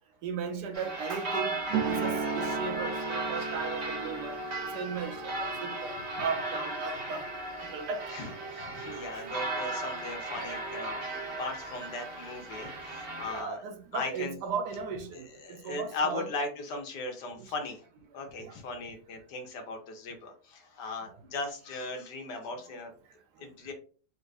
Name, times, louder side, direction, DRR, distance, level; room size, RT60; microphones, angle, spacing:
voice 1, 0.2-7.2 7.7-8.0 9.1-9.3 9.6-9.7 13.3-16.3 17.4-17.5 18.4-18.6 21.1-21.2, right 6 dB, 70° right, 1.2 m, -37 dB
sound 1, 0.7-13.4, right 2 dB, 45° right, 0.8 m, -36 dB
sound 2, 1.7-9.7, right 5 dB, 85° right, 1.4 m, -38 dB
voice 2, 8.1-11.0 11.4-13.6 13.9-14.4 15.4-17.8 18.1-22.9 23.4-23.7, left 3 dB, 75° left, 1.5 m, -38 dB
4.1 x 2.5 x 3.2 m
omnidirectional pair, 1.9 m